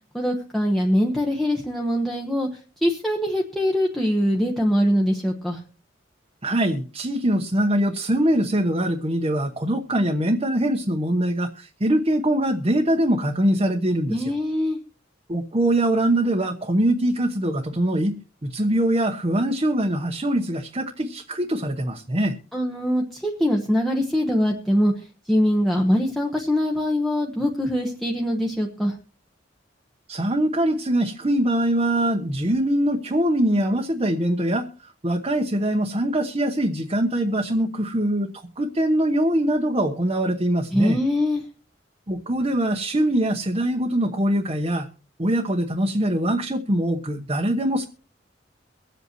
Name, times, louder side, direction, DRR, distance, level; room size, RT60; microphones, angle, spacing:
voice 1, 0.1-2.5 2.8-5.6 14.1-14.8 22.5-24.9 25.3-29.0 40.7-41.4, equal, ahead, -2 dB, 1.1 m, -22 dB
voice 2, 6.4-14.3 15.3-18.2 18.4-22.3 30.1-34.7 35.0-38.3 38.6-41.0 42.1-44.9 45.2-47.8, right 1 dB, 30° right, 2 dB, 1.0 m, -23 dB
24.0 x 8.2 x 3.0 m, 0.36 s
head